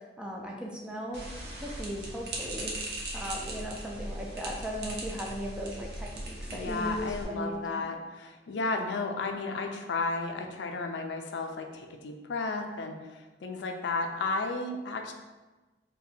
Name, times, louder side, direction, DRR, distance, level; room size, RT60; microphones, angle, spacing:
voice 1, 0.2-1.2 1.6-2.7 3.1-7.8, equal, 5° right, -1 dB, 0.4 m, -37 dB
sound 1, 1.1-7.2, right 1 dB, 60° right, 0.6 m, -39 dB
voice 2, 6.5-15.1, left 3 dB, 75° left, 4 dB, 0.4 m, -33 dB
2.7 x 2.2 x 4.0 m, 1.2 s
head